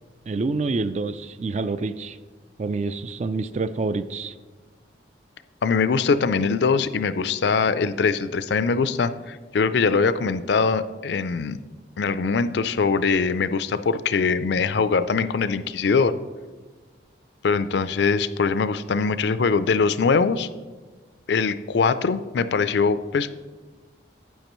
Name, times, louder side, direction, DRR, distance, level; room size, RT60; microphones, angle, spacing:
voice 1, 0.3-2.2 2.6-4.4, right 3 dB, 35° right, 13 dB, 0.3 m, -27 dB
voice 2, 5.6-11.6 12.0-16.1 17.4-20.5 21.3-23.3, left 5 dB, 65° left, 13 dB, 0.4 m, -22 dB
12.0 x 8.9 x 3.0 m, 1.3 s
head